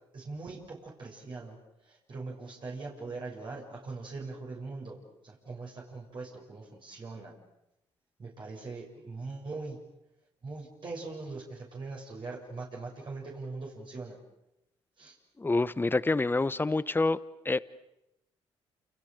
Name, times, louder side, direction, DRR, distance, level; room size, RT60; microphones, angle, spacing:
voice 1, 0.1-1.6 1.8-5.0 5.2-7.3 8.2-9.8 10.4-14.2 15.0-15.2, right 3 dB, 50° right, -2 dB, 7.4 m, -41 dB
voice 2, 15.4-17.2 17.4-17.6, left 3 dB, 20° left, 16 dB, 1.1 m, -27 dB
29.5 x 28.5 x 6.9 m, 0.86 s
supercardioid pair, 70°, 11 cm